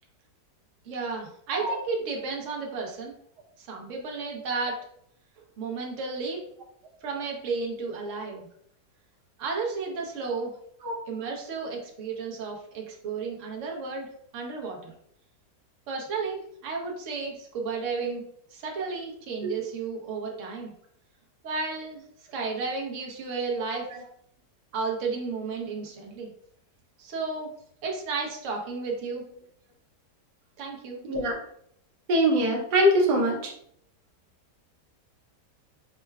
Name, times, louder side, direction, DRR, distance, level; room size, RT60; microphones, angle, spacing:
voice 1, 0.8-3.1 3.6-4.8 5.6-6.5 7.0-8.5 9.4-10.5 11.1-14.1 14.3-14.9 15.9-18.2 18.5-20.7 21.4-22.0 22.3-23.9 24.7-26.3 27.0-27.5 27.8-29.2 30.6-31.0, right 4 dB, 55° right, 0 dB, 1.0 m, -33 dB
voice 2, 31.0-31.4 32.1-33.5, equal, 75° right, 0 dB, 1.4 m, -23 dB
5.5 x 2.1 x 2.2 m, 0.67 s
omnidirectional pair, 1.8 m